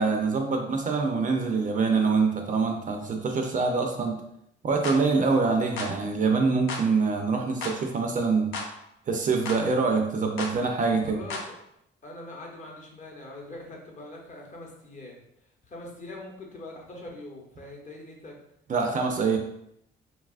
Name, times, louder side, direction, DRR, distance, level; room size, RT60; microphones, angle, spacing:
voice 1, 0.0-4.2 4.6-8.5 9.1-11.2 18.7-19.4, right 4 dB, 40° right, 3 dB, 0.4 m, -25 dB
sound 1, 4.8-5.0 5.8-6.0 6.7-6.9 7.6-7.8 8.5-8.7 9.5-9.6 10.4-10.6 11.3-11.5, left 3 dB, 80° left, 0.5 m, -33 dB
voice 2, 11.0-11.6 12.0-15.2 15.7-18.3, left 2 dB, 40° left, -1 dB, 0.8 m, -42 dB
2.8 x 2.3 x 2.4 m, 0.76 s
cardioid pair, 90°, 20 cm